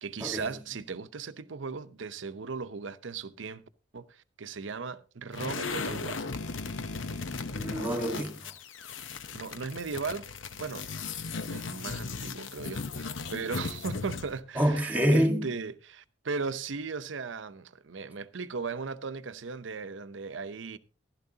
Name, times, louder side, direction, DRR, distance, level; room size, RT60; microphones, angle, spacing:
voice 1, 0.0-3.6 3.9-6.2 9.3-10.3 10.5-10.9 11.5-20.8, right 4 dB, 70° right, 0.7 m, -37 dB
sound 1, 5.3-14.4, left 4 dB, 75° left, 0.8 m, -37 dB
voice 2, 7.5-8.5 14.6-15.5, equal, 10° right, 1.5 m, -26 dB
14.5 x 12.0 x 2.8 m
head